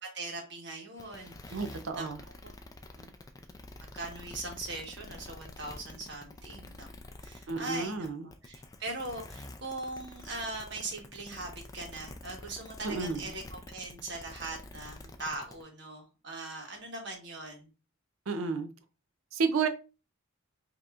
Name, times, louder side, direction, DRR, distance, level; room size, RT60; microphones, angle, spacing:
voice 1, 0.0-1.7 1.9-2.1 2.4-2.5 2.9-3.1 3.9-6.9 7.2-17.7, right 2 dB, 55° right, 1.4 m, -40 dB
sound 1, 1.0-15.6, left 2 dB, 15° left, 0.4 m, -48 dB
voice 2, 1.5-2.2 7.5-8.3 12.8-13.3 18.3-18.7 19.3-19.7, right 4 dB, 80° right, 0.6 m, -31 dB
5.4 x 2.9 x 2.5 m
head